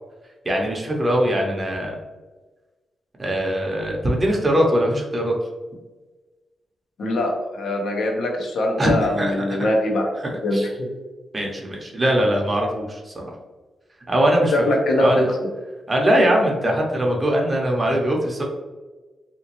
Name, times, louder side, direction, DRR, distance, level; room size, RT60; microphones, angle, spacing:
voice 1, 0.4-2.0 3.2-5.4 8.8-9.4 10.2-10.7 11.3-13.3 14.1-14.6 15.0-15.3 15.9-18.4, equal, 25° right, 0 dB, 0.7 m, -21 dB
voice 2, 7.0-10.1 10.4-10.9 14.5-15.3, left 1 dB, 75° left, 1 dB, 0.8 m, -22 dB
3.2 x 2.9 x 3.0 m, 1.2 s
wide cardioid pair, 125°, 0 cm